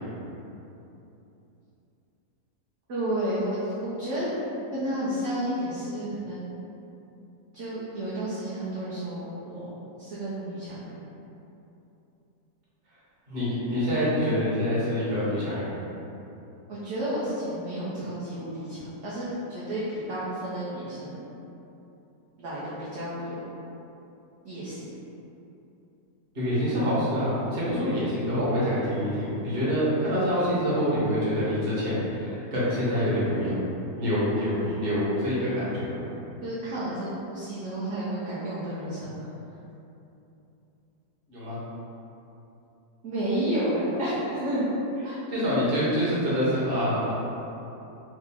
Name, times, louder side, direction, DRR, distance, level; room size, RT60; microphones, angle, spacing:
voice 1, 2.9-4.3 4.7-6.5 7.5-9.7 10.0-11.0 16.7-21.2 22.4-23.4 24.4-24.9 36.4-39.3 43.0-44.7 45.0-45.2, right 1 dB, 60° right, -10 dB, 1.0 m, -31 dB
voice 2, 13.3-15.6 26.3-33.6 34.0-36.0 41.3-41.6 45.3-47.2, equal, 40° right, -10 dB, 1.2 m, -26 dB
4.8 x 2.1 x 3.4 m, 2.9 s
omnidirectional pair, 1.7 m